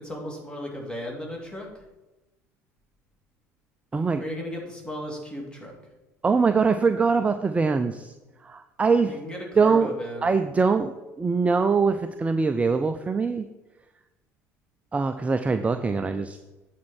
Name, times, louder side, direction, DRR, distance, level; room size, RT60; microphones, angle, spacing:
voice 1, 0.0-1.7 4.2-5.7 9.1-10.3, equal, 10° left, -1 dB, 2.5 m, -35 dB
voice 2, 3.9-4.2 6.2-8.1 8.4-9.2 9.6-9.9 10.2-13.5 14.9-16.4, right 4 dB, 15° right, 9 dB, 0.4 m, -23 dB
8.5 x 4.4 x 5.9 m, 1.1 s
figure-of-eight pair, 60°, 8 cm